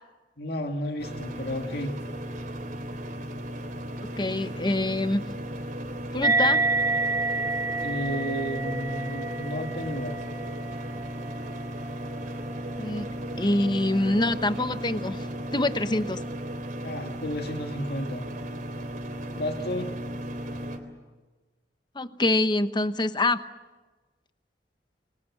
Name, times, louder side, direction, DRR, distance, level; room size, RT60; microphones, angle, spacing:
voice 1, 0.4-2.0 7.8-10.2 16.8-18.2 19.4-19.9, equal, 65° left, 4 dB, 2.3 m, -32 dB
sound 1, 1.0-20.8, equal, 50° right, 3.6 m, -35 dB
voice 2, 4.2-5.2 6.1-6.6 12.8-15.3 15.5-16.2 21.9-23.4, left 2 dB, 25° left, 11 dB, 1.0 m, -25 dB
sound 2, 6.2-13.1, right 3 dB, 20° right, 1.1 m, -29 dB
29.0 x 23.5 x 7.4 m, 1.3 s
head